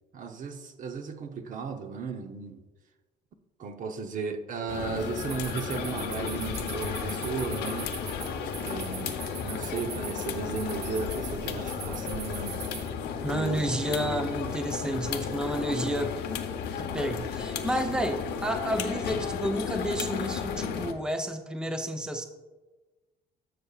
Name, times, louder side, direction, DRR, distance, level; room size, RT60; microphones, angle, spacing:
voice 1, 0.1-2.6 3.6-7.9 8.6-12.6 13.3-14.2 15.5-15.6 17.9-18.0, right 5 dB, 50° right, 0.8 m, -35 dB
sound 1, 4.7-20.9, left 7 dB, 75° left, 0.9 m, -33 dB
sound 2, 5.0-12.9, right 7 dB, 80° right, 1.1 m, -42 dB
voice 2, 13.2-16.1 16.8-22.2, equal, 5° right, 0.6 m, -31 dB
12.5 x 6.7 x 2.4 m
cardioid pair, 110°, 17 cm